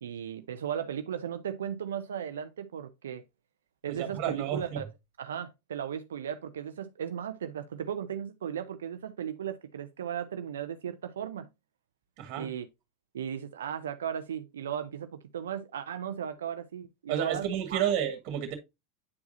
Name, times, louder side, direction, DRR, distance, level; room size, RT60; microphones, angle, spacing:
voice 1, 0.0-3.2 3.8-4.8 5.2-11.5 12.4-12.7 13.1-17.8, right 9 dB, 85° right, 0.5 m, -36 dB
voice 2, 3.9-4.8 12.2-12.5 17.1-18.5, right 9 dB, 55° right, 2.0 m, -31 dB
9.5 x 4.7 x 2.6 m
hypercardioid pair, 95°, 0 cm